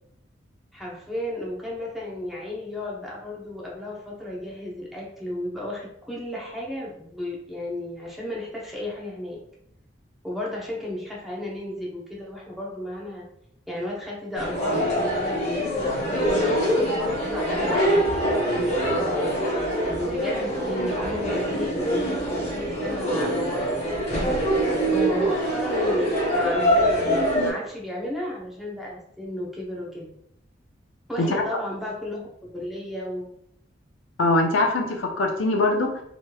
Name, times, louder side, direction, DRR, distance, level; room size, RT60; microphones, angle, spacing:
voice 1, 0.7-9.4 10.2-13.3 13.7-18.0 18.9-30.1 31.1-32.3 32.5-33.3, left 1 dB, ahead, -4 dB, 0.7 m, -33 dB
sound 1, 14.4-27.5, equal, 35° left, 1.0 m, -24 dB
voice 2, 34.2-36.0, left 2 dB, 85° left, 2 dB, 0.5 m, -22 dB
3.2 x 2.9 x 2.3 m, 0.74 s
head